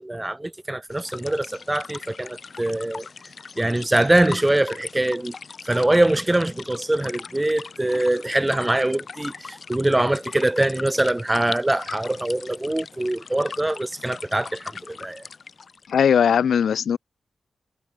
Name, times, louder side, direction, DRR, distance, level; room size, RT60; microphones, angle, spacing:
voice 1, 0.0-3.1 3.6-5.3 5.6-15.2, right 1 dB, 10° right, 0.3 m, -23 dB
sound 1, 0.9-15.9, left 5 dB, 45° left, 4.5 m, -39 dB
voice 2, 15.9-17.0, left 7 dB, 80° left, 0.7 m, -19 dB
wide cardioid pair, 160°, 0 cm